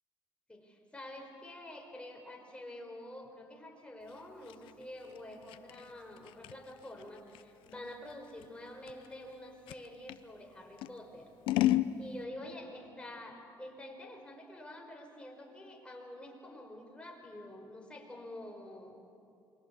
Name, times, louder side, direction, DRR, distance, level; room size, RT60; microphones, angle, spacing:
voice 1, 0.5-11.7 12.0-19.0, left 1 dB, 10° left, 1 dB, 5.3 m, -48 dB
Scissors, 4.1-10.2 10.8-11.9, left 14 dB, 90° left, 0.7 m, -35 dB
27.0 x 23.0 x 8.5 m, 2.6 s
cardioid pair, 95°, 8 cm